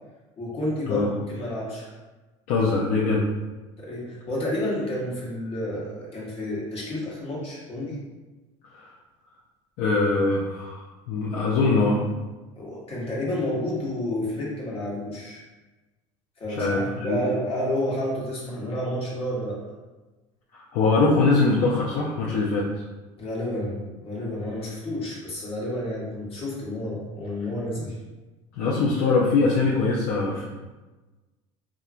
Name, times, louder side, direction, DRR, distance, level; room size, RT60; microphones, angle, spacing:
voice 1, 0.4-1.9 3.8-8.0 12.6-15.4 16.4-19.6 23.2-27.9, left 1 dB, 40° left, -5 dB, 1.2 m, -30 dB
voice 2, 2.5-3.3 8.7-8.8 9.8-12.1 16.5-17.2 20.5-22.7 28.6-30.5, left 3 dB, 65° left, -5 dB, 0.5 m, -22 dB
2.9 x 2.4 x 2.4 m, 1.2 s
hypercardioid pair, 85°, 15 cm